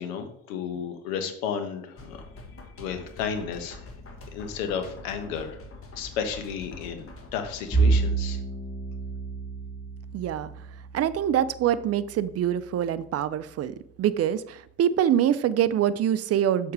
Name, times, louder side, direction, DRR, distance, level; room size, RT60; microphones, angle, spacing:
voice 1, 0.0-2.3 2.8-3.9 4.3-5.6 6.0-8.4, left 7 dB, 70° left, 7 dB, 1.3 m, -33 dB
sound 1, 2.0-8.0, left 2 dB, 30° left, 1.6 m, -44 dB
Bowed string instrument, 7.7-12.3, right 4 dB, 10° left, 2.2 m, -28 dB
voice 2, 10.1-10.5 10.9-16.7, right 10 dB, 35° right, 15 dB, 0.6 m, -25 dB
7.0 x 4.6 x 4.8 m, 0.70 s
hypercardioid pair, 60°, 41 cm